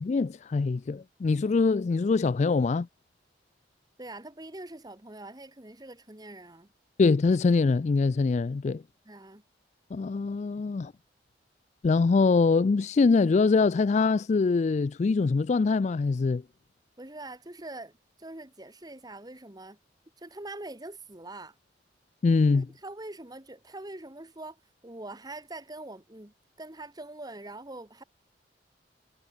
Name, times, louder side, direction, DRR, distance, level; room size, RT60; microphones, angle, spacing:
voice 1, 0.0-2.9 7.0-8.8 9.9-10.9 11.8-16.4 22.2-22.7, left 4 dB, 40° left, 0.3 m, -23 dB
voice 2, 4.0-6.7 9.0-9.4 17.0-19.8 20.2-21.5 22.5-28.0, right 2 dB, 20° right, 1.7 m, -43 dB
head